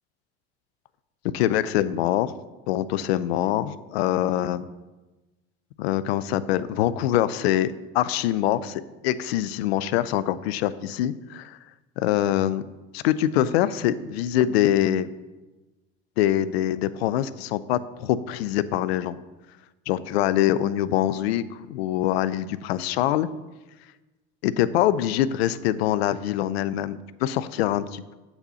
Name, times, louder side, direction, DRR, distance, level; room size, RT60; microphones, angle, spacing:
voice 1, 1.3-2.3 2.7-4.7 5.8-11.6 12.0-12.6 12.9-15.1 16.2-19.2 19.9-23.3 24.4-28.1, left 12 dB, 90° left, 16 dB, 0.5 m, -24 dB
7.9 x 4.2 x 6.8 m, 1.1 s
supercardioid pair, 90°, 30 cm